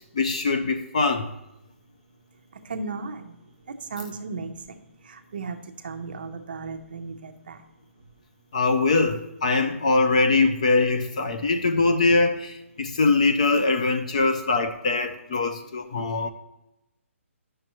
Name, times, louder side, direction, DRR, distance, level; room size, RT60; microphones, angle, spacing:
voice 1, 0.0-1.3 8.5-16.3, left 3 dB, 30° left, 7 dB, 0.4 m, -22 dB
voice 2, 2.7-3.4 3.9-4.5 5.1-5.6 5.8-7.6, right 4 dB, 40° right, 6 dB, 0.6 m, -35 dB
10.5 x 6.3 x 3.0 m, 0.92 s
hypercardioid pair, 180°, 7 cm